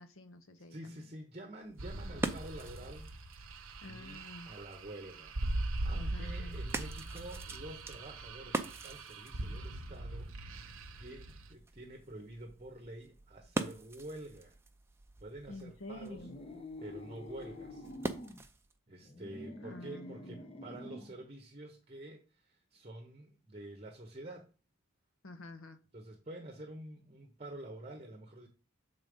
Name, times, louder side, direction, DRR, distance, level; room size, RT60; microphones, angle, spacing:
voice 1, 0.0-1.1 3.8-4.5 6.0-6.6 15.5-16.4 19.6-20.4 25.2-25.8, left 1 dB, 75° left, 8 dB, 0.9 m, -49 dB
voice 2, 0.7-3.1 3.6-14.6 15.2-16.3 16.8-17.9 18.9-24.5 25.9-28.5, right 1 dB, 30° right, 3 dB, 0.9 m, -48 dB
sound 1, 1.6-18.8, right 2 dB, 10° right, 0.5 m, -44 dB
sound 2, 1.8-11.5, right 2 dB, 70° right, 0.8 m, -41 dB
sound 3, 16.1-18.4 19.0-21.2, left 1 dB, 25° left, 0.8 m, -47 dB
7.4 x 3.9 x 5.2 m, 0.36 s
head